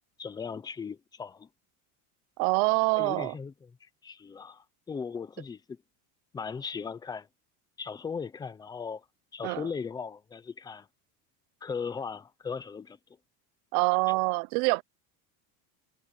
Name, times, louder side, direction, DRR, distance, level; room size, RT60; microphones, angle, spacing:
voice 1, 0.2-1.5 2.9-5.8 6.3-7.3 7.8-9.0 9.3-10.9 11.6-13.0, left 5 dB, 10° left, 0.5 m, -38 dB
voice 2, 2.4-3.3 9.4-9.7 13.7-14.8, right 27 dB, 55° right, 0.6 m, -25 dB
cardioid pair, 175°, 44 cm